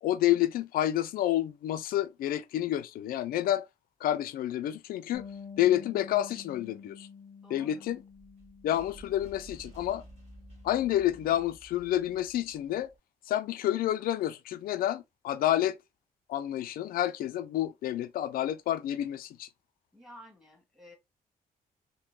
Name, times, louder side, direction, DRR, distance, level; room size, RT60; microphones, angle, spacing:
voice 1, 0.0-3.7 4.0-5.3 5.6-7.1 7.5-8.0 8.6-10.0 10.6-12.9 13.3-15.8 16.3-19.5, left 12 dB, 75° left, 0.4 m, -29 dB
Bass guitar, 5.1-11.4, left 6 dB, 30° left, 0.7 m, -49 dB
voice 2, 7.4-7.8 19.9-21.0, equal, ahead, 1.4 m, -52 dB
sound 1, 7.8-13.0, right 1 dB, 50° right, 1.5 m, -53 dB
3.7 x 2.1 x 2.3 m
cardioid pair, 70°, 15 cm